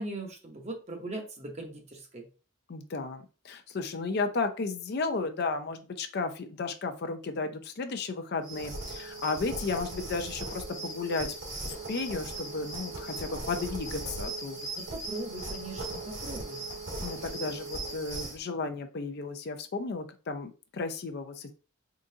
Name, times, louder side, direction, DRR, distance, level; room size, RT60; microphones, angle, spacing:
voice 1, 0.0-2.2 14.7-16.6, right 2 dB, 35° right, 2 dB, 0.9 m, -39 dB
voice 2, 2.7-11.3 11.6-14.6 17.0-21.5, left 3 dB, 50° left, 7 dB, 0.4 m, -34 dB
sound 1, 8.4-18.4, right 2 dB, 65° right, 2.0 m, -38 dB
3.8 x 3.7 x 2.7 m, 0.35 s
head